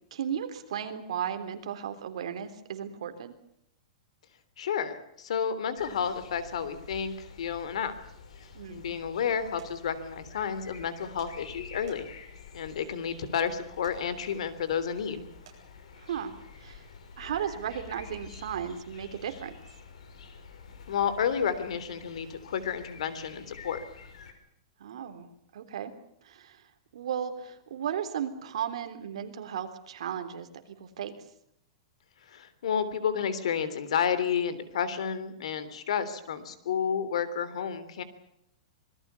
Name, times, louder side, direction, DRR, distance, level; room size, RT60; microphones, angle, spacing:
voice 1, 0.1-3.4 8.5-8.8 16.0-16.3 16.6-16.8 17.2-19.5 24.8-25.3 25.5-25.9 26.2-26.6 26.9-31.1, right 9 dB, 65° right, 8 dB, 3.6 m, -35 dB
voice 2, 4.6-7.9 8.7-12.1 12.5-15.3 20.9-23.8 32.3-38.0, left 7 dB, 65° left, 14 dB, 3.3 m, -31 dB
sound 1, 5.8-24.3, left 5 dB, 80° left, 5.6 m, -49 dB
sound 2, 9.6-9.7 11.2-11.3 11.9-12.3 13.8-14.0 15.5-15.6, right 9 dB, 40° right, 7.4 m, -54 dB
26.0 x 20.5 x 7.1 m, 0.74 s
supercardioid pair, 180°, 3 cm